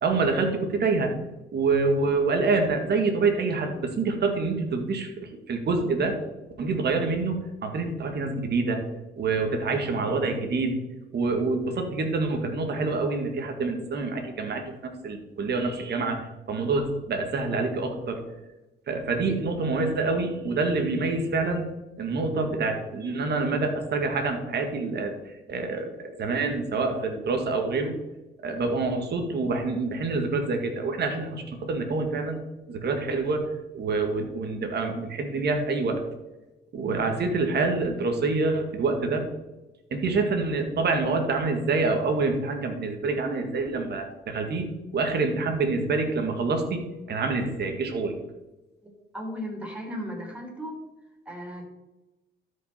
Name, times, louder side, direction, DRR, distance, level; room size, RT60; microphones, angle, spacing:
voice 1, 0.0-1.1 1.5-6.2 6.6-8.8 9.2-10.7 11.1-18.2 18.9-21.7 22.0-25.2 25.5-28.0 28.4-32.4 32.7-33.4 33.7-35.9 36.7-39.2 39.9-46.8 47.1-48.1, right 3 dB, 55° right, 4 dB, 2.0 m, -26 dB
voice 2, 49.1-50.8 51.3-51.7, equal, 5° right, -1 dB, 3.9 m, -35 dB
12.5 x 5.6 x 4.4 m, 1.0 s
cardioid pair, 90°, 20 cm